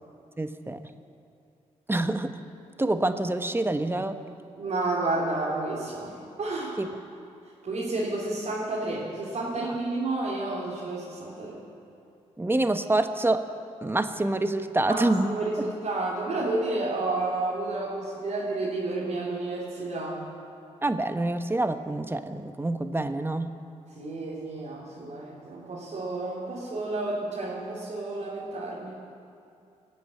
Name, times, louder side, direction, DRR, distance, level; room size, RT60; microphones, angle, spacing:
voice 1, 0.4-0.8 1.9-2.3 2.8-4.1 6.8-6.9 12.4-13.4 13.8-15.3 20.8-23.5, right 2 dB, 15° right, 9 dB, 1.0 m, -26 dB
voice 2, 4.6-6.8 7.6-11.6 14.8-20.2 23.9-28.9, right 2 dB, 60° right, -7 dB, 3.1 m, -31 dB
18.5 x 7.7 x 8.9 m, 2.5 s
supercardioid pair, 55°, 14 cm